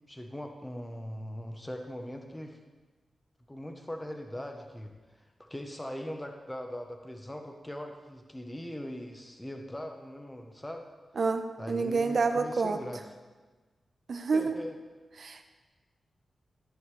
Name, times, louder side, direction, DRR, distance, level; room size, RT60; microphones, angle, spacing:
voice 1, 0.1-2.6 3.5-4.9 5.5-10.9 11.6-13.0 14.3-14.7, equal, 10° left, 4 dB, 0.8 m, -40 dB
voice 2, 11.2-12.8 14.1-14.6 15.2-15.4, right 4 dB, 55° right, 7 dB, 0.7 m, -28 dB
12.5 x 7.1 x 3.2 m, 1.3 s
wide cardioid pair, 100°, 0 cm